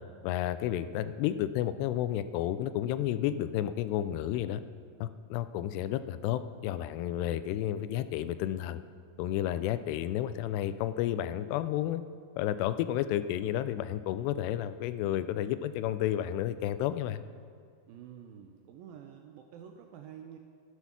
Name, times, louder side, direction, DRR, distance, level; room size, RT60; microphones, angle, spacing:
voice 1, 0.2-4.6 5.0-8.8 9.2-12.0 12.4-17.2, left 12 dB, 90° left, 13 dB, 2.7 m, -31 dB
voice 2, 17.9-20.4, right 9 dB, 80° right, 5 dB, 2.1 m, -49 dB
12.5 x 10.0 x 5.9 m, 2.1 s
omnidirectional pair, 4.7 m